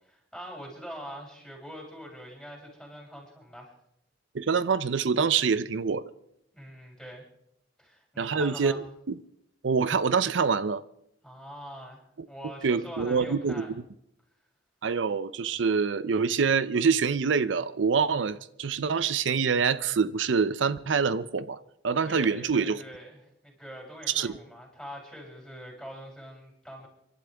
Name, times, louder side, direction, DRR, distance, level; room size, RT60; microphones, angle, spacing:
voice 1, 0.1-3.7 6.5-7.2 7.8-8.8 11.2-13.7 22.0-26.9, equal, ahead, -2 dB, 6.8 m, -44 dB
voice 2, 4.3-6.0 8.2-9.2 9.6-10.8 12.6-13.7 14.8-21.6 21.8-22.8 24.1-24.3, right 5 dB, 75° right, 16 dB, 0.6 m, -26 dB
30.0 x 12.0 x 3.5 m, 0.77 s
head